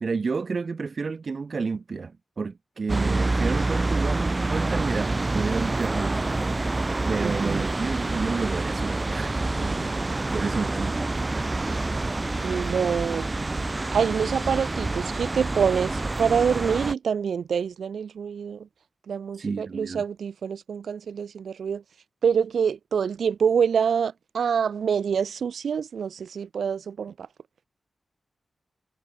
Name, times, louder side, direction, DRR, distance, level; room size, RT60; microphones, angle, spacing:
voice 1, 0.0-6.3 7.1-9.8 10.3-11.1 19.4-20.0, right 4 dB, 45° right, 0.8 m, -30 dB
sound 1, 2.9-16.9, right 2 dB, 25° right, 1.2 m, -27 dB
voice 2, 7.2-7.7 9.5-9.9 12.4-13.7 13.9-18.7 19.1-21.8 22.2-27.3, right 7 dB, 85° right, 2.0 m, -26 dB
wide cardioid pair, 135°, 0 cm